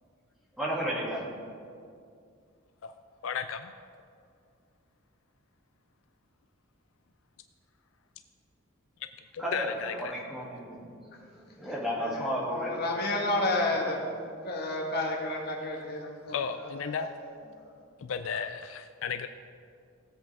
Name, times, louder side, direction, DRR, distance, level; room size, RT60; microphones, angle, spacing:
voice 1, 0.6-1.3 9.4-10.9 11.5-12.7 13.6-14.0, equal, ahead, -6 dB, 2.4 m, -33 dB
voice 2, 3.2-3.7 9.3-10.2 16.3-17.1 18.0-19.3, left 6 dB, 65° left, 9 dB, 0.4 m, -34 dB
voice 3, 12.0-14.2 14.4-16.4 16.8-17.1 17.6-17.8, left 2 dB, 50° left, 0 dB, 1.6 m, -31 dB
18.0 x 8.0 x 3.5 m, 2.3 s
head